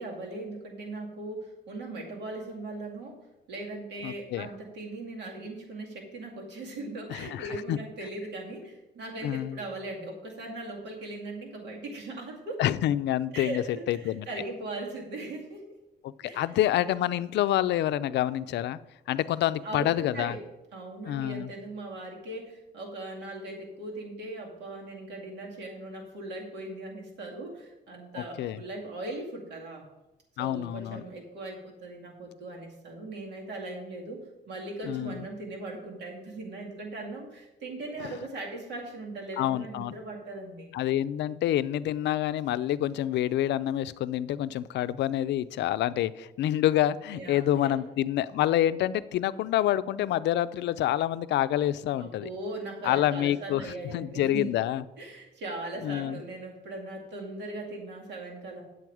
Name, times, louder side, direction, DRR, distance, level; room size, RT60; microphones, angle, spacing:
voice 1, 0.0-3.2 3.5-12.6 13.3-15.6 16.2-16.4 16.8-17.0 19.6-20.4 20.7-29.8 30.4-40.7 47.1-47.8 52.0-54.6 55.0-58.6, right 2 dB, 85° right, -1 dB, 2.4 m, -39 dB
voice 2, 4.0-4.5 7.1-7.8 9.2-9.6 12.6-14.3 16.0-18.8 19.1-20.4 21.1-21.5 28.4-28.6 30.4-31.0 34.8-35.2 38.0-38.1 39.4-39.9 40.7-52.3 52.8-54.8 55.8-56.2, left 12 dB, 90° left, 14 dB, 0.4 m, -27 dB
9.2 x 7.8 x 4.8 m, 0.98 s
cardioid pair, 115°, 17 cm